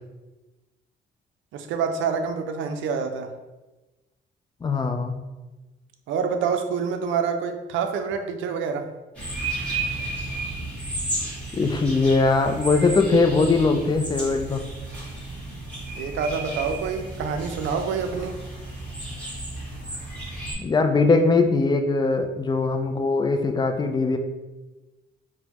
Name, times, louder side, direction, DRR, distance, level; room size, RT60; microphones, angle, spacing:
voice 1, 1.5-3.3 6.1-8.9 16.0-18.4, right 6 dB, 80° right, 6 dB, 0.4 m, -27 dB
voice 2, 4.6-5.2 11.6-14.7 20.6-24.2, left 3 dB, 20° left, 6 dB, 0.4 m, -21 dB
sound 1, 9.1-20.5, right 2 dB, 5° left, 1.4 m, -33 dB
4.2 x 2.1 x 2.8 m, 1.1 s
cardioid pair, 90°, 20 cm